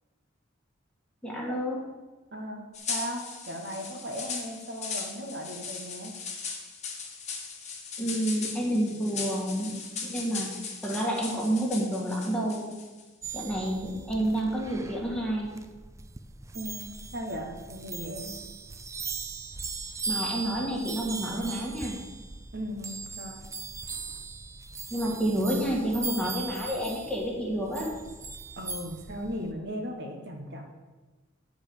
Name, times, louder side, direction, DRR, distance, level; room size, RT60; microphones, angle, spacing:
voice 1, 1.2-1.8 8.0-9.7 10.0-10.5 10.8-12.7 13.3-15.5 20.1-22.0 24.9-27.9, right 1 dB, 5° left, -3 dB, 1.8 m, -29 dB
voice 2, 2.3-2.6 2.9-6.1 16.5-18.4 22.5-23.4 28.6-30.6, equal, 55° right, 1 dB, 1.4 m, -37 dB
sound 1, 2.7-13.0, left 5 dB, 35° left, 1.3 m, -38 dB
sound 2, 13.2-29.5, right 4 dB, 15° right, 0.4 m, -39 dB
9.8 x 5.1 x 6.9 m, 1.2 s
head